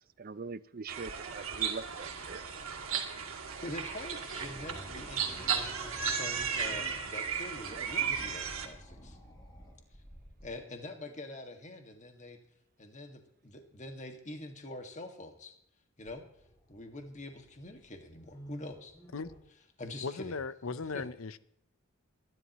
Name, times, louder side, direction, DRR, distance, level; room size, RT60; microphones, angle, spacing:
voice 1, 0.2-2.4 7.8-8.3, right 4 dB, 45° right, 0.5 m, -43 dB
sound 1, 0.9-8.7, right 6 dB, 80° right, 2.3 m, -35 dB
voice 2, 3.6-9.2 10.4-12.4 12.8-15.6 16.0-16.2 16.7-18.9 19.8-20.4 20.9-21.0, left 1 dB, 35° left, 1.9 m, -45 dB
sound 2, 4.3-10.5 16.1-19.4, equal, 15° left, 6.7 m, -52 dB
voice 3, 20.0-21.4, left 4 dB, 75° left, 0.7 m, -37 dB
24.0 x 11.5 x 3.1 m
head